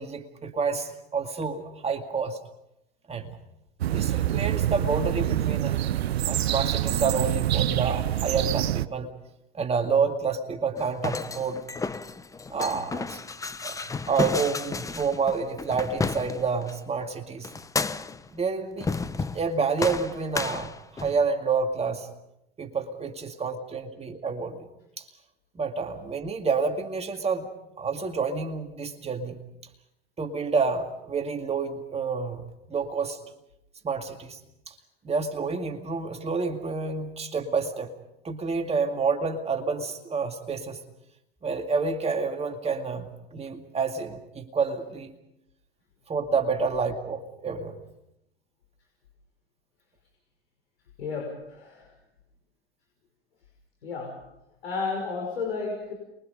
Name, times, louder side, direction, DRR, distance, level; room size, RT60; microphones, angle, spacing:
voice 1, 0.0-2.4 3.1-3.3 3.9-5.8 6.2-9.1 9.5-11.6 12.5-13.2 13.6-13.7 14.1-17.5 18.3-18.9 19.3-22.1 22.6-24.7 25.0-25.1 25.6-27.5 27.8-29.4 30.2-32.4 32.7-33.2 33.8-34.4 34.7-34.8 35.0-37.9 38.2-40.8 41.4-45.2 46.1-47.8, right 5 dB, 20° right, 5 dB, 2.2 m, -28 dB
sound 1, 3.8-8.9, right 12 dB, 75° right, 0.8 m, -26 dB
sound 2, 10.8-16.8 17.4-18.3 18.8-19.5 19.8-21.2, left 4 dB, 10° left, 0.8 m, -32 dB
voice 2, 51.0-51.9 53.8-54.2 54.6-55.9, left 4 dB, 80° left, 1 dB, 5.8 m, -32 dB
28.5 x 22.5 x 5.4 m, 0.86 s
hypercardioid pair, 95°, 32 cm